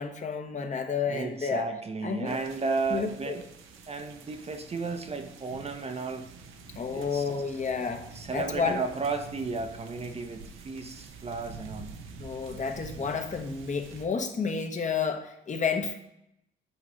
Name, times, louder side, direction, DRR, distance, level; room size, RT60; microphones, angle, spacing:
voice 1, 0.0-1.7 2.0-2.4 2.9-3.4 6.8-8.1 8.3-8.8 12.2-16.0, left 5 dB, 40° left, 5 dB, 1.0 m, -30 dB
voice 2, 1.1-3.4 3.9-6.3 6.9-7.3 8.1-12.0, right 4 dB, 30° right, 7 dB, 0.7 m, -34 dB
sound 1, 2.2-14.1, right 4 dB, 90° right, 0.8 m, -47 dB
8.4 x 3.0 x 6.1 m, 0.80 s
cardioid pair, 90°, 20 cm